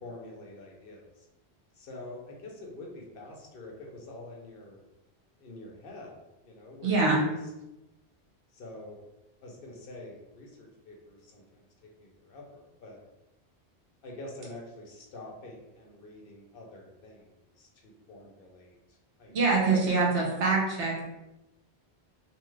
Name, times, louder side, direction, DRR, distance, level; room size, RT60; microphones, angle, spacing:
voice 1, 0.0-1.3 1.7-4.8 5.4-6.1 6.4-7.4 8.5-9.0 9.4-13.0 14.0-19.4 19.8-20.0, left 2 dB, 60° left, -1 dB, 0.8 m, -46 dB
voice 2, 6.8-7.2 19.3-21.0, right 3 dB, 85° right, -3 dB, 1.1 m, -24 dB
2.8 x 2.3 x 3.1 m, 0.96 s
omnidirectional pair, 1.1 m